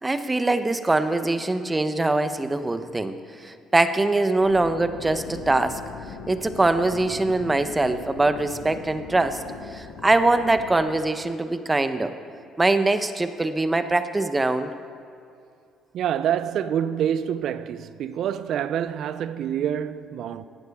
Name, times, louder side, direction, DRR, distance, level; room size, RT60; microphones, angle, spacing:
voice 1, 0.0-3.2 3.4-5.8 6.3-9.4 9.7-12.1 12.6-14.7, right 2 dB, 20° right, 0.9 m, -23 dB
sound 1, 4.4-11.0, left 5 dB, 85° left, 1.0 m, -40 dB
voice 2, 15.9-20.4, right 9 dB, 65° right, 0.5 m, -27 dB
18.0 x 11.5 x 3.6 m
supercardioid pair, 70°, 0 cm